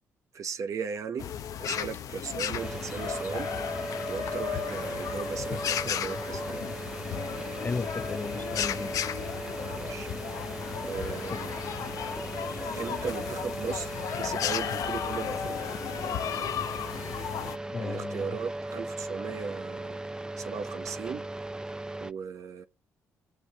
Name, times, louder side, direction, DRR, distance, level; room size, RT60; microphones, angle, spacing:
voice 1, 0.3-1.3 1.6-3.5 4.1-6.6 9.6-10.1 10.9-11.5 12.7-15.6 17.8-20.0 20.4-21.3 22.0-22.6, right 6 dB, 60° right, 1.0 m, -37 dB
sound 1, 1.2-17.6, left 9 dB, 70° left, 0.8 m, -34 dB
sound 2, 2.6-22.1, right 2 dB, 10° right, 0.6 m, -37 dB
voice 2, 7.6-9.0 11.3-11.4 17.7-18.4, left 4 dB, 30° left, 0.5 m, -35 dB
22.5 x 8.0 x 2.9 m
supercardioid pair, 65°, 6 cm